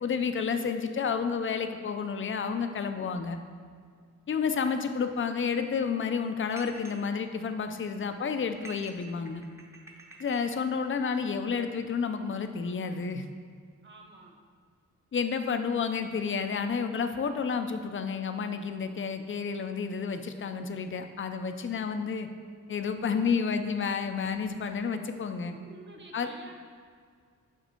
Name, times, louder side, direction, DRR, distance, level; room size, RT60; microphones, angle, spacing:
voice 1, 0.0-3.4 4.3-9.4 10.2-13.3 15.1-22.3 22.7-25.6 26.1-26.3, left 5 dB, 40° left, 8 dB, 0.5 m, -30 dB
sound 1, 6.5-7.0 7.6-8.0 8.5-10.5, right 2 dB, 10° right, 0.8 m, -49 dB
voice 2, 13.8-14.4 25.5-26.5, right 2 dB, 40° right, 1 dB, 1.0 m, -50 dB
6.8 x 5.9 x 4.4 m, 2.1 s
wide cardioid pair, 135°, 30 cm